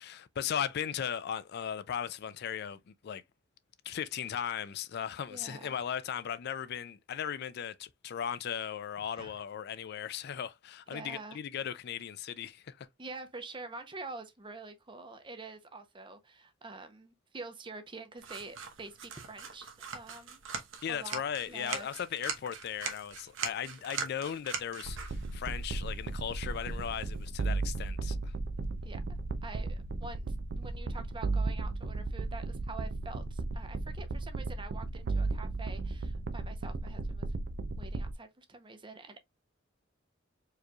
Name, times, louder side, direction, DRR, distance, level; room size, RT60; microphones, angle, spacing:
voice 1, 0.0-3.2 3.9-12.9 20.8-28.3, left 8 dB, 55° left, 0.4 m, -37 dB
voice 2, 5.3-5.8 9.2-9.3 10.9-11.4 13.0-20.4 20.9-21.2 21.5-21.9 28.8-29.0 29.4-37.3 37.8-39.2, right 3 dB, 25° right, 0.7 m, -46 dB
sound 1, 18.2-27.3, right 6 dB, 80° right, 1.0 m, -42 dB
sound 2, 24.8-38.1, right 3 dB, 60° right, 0.5 m, -35 dB
4.7 x 3.0 x 2.3 m
head